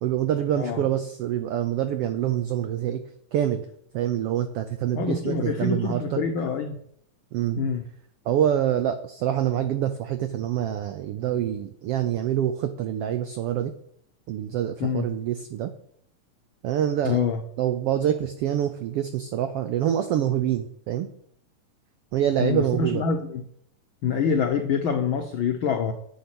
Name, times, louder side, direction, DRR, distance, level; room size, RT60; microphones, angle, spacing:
voice 1, 0.0-3.0 3.3-3.6 3.9-6.2 7.3-7.6 8.2-13.7 14.3-15.7 16.6-17.2 17.6-21.1 22.1-23.0, right 10 dB, 80° right, 9 dB, 1.3 m, -26 dB
voice 2, 4.9-6.8 7.6-7.8 14.8-15.1 17.0-17.4 22.4-23.4 24.0-25.9, left 6 dB, 75° left, 5 dB, 1.1 m, -26 dB
10.0 x 8.7 x 6.0 m, 0.69 s
omnidirectional pair, 3.5 m